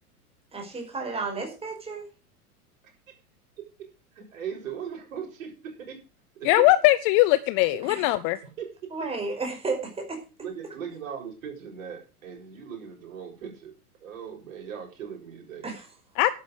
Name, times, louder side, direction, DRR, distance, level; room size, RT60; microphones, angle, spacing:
voice 1, 0.5-2.1 7.8-8.0 8.9-10.2 15.6-15.7, right 3 dB, 15° right, 5.0 m, -32 dB
voice 2, 3.8-6.0 6.3-6.7 8.6-8.7 10.4-13.7 14.0-15.7, right 7 dB, 60° right, 7.0 m, -39 dB
voice 3, 6.5-8.4 16.2-16.4, left 17 dB, 25° left, 0.6 m, -20 dB
11.5 x 9.3 x 6.5 m
figure-of-eight pair, 95°, 45 cm